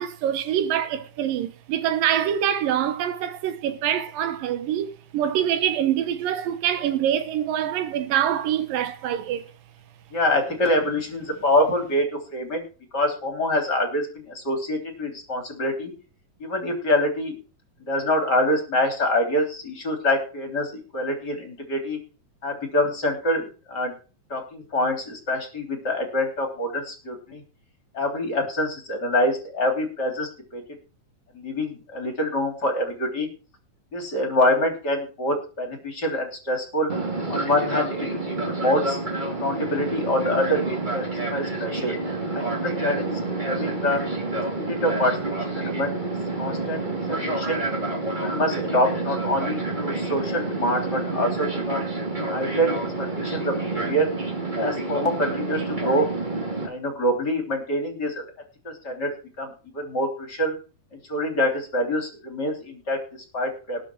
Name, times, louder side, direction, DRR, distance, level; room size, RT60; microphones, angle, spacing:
voice 1, 0.0-9.4, right 10 dB, 85° right, 2.9 m, -25 dB
voice 2, 10.1-12.6 12.9-15.9 16.4-17.4 17.9-22.0 22.4-23.9 24.3-27.4 27.9-30.6 31.3-33.3 33.9-36.9 37.3-38.2 38.6-39.0 39.4-41.9 42.3-44.0 44.6-45.2 45.5-45.9 46.4-46.8 47.1-47.6 48.1-51.8 52.3-54.1 54.6-56.1 56.6-58.2 58.6-59.1 59.4-60.5 61.1-63.0 63.3-63.8, left 1 dB, 30° left, 3.7 m, -25 dB
Fixed-wing aircraft airplane, 36.9-56.7, right 2 dB, 15° right, 1.8 m, -28 dB
19.5 x 6.8 x 4.7 m
omnidirectional pair, 3.9 m